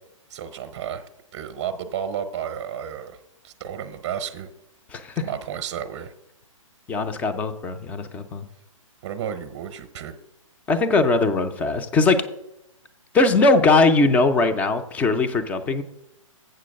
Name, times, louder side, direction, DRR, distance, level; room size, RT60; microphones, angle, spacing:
voice 1, 0.3-1.1 1.3-3.2 3.4-4.5 5.2-6.1 9.0-10.1, right 8 dB, 35° right, 7 dB, 0.7 m, -32 dB
voice 2, 4.9-5.2 6.9-8.5 10.7-12.2 13.1-15.8, left 3 dB, 10° left, 9 dB, 0.4 m, -20 dB
7.7 x 6.4 x 6.3 m, 0.85 s
hypercardioid pair, 150°, 17 cm